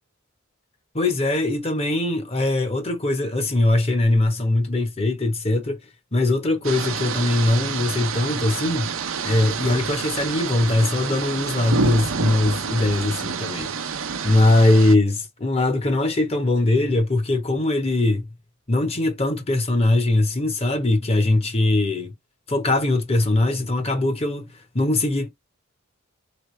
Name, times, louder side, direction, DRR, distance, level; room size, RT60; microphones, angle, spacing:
voice 1, 0.9-5.8 6.1-8.9 9.2-13.7 14.2-18.3 18.7-22.1 22.5-25.3, left 2 dB, 30° left, 1.1 m, -21 dB
sound 1, 6.6-15.0, right 5 dB, 70° right, 0.7 m, -28 dB
3.6 x 3.3 x 3.2 m
head